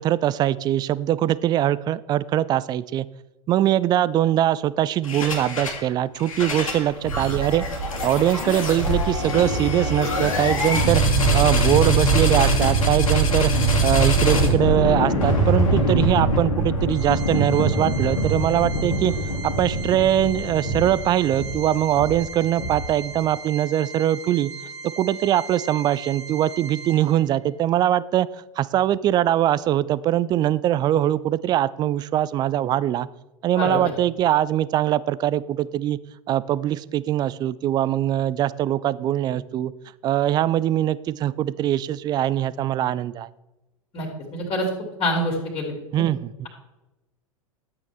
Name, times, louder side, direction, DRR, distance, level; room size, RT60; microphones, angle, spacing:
voice 1, 0.0-3.1 3.5-7.6 8.0-11.0 11.3-13.5 13.8-19.1 19.4-24.5 24.8-28.3 28.6-33.1 33.4-36.0 36.3-39.7 40.0-43.3 45.9-46.3, right 12 dB, 25° right, 18 dB, 0.4 m, -22 dB
sound 1, 5.0-5.8 6.2-23.1, right 1 dB, 70° left, 2.3 m, -23 dB
Organ, 16.9-27.5, right 3 dB, 60° right, 1.6 m, -38 dB
voice 2, 44.3-44.7 45.0-45.7 46.0-46.1, left 1 dB, 25° left, 0 dB, 2.8 m, -25 dB
12.5 x 8.2 x 3.4 m, 0.99 s
figure-of-eight pair, 90°, 18 cm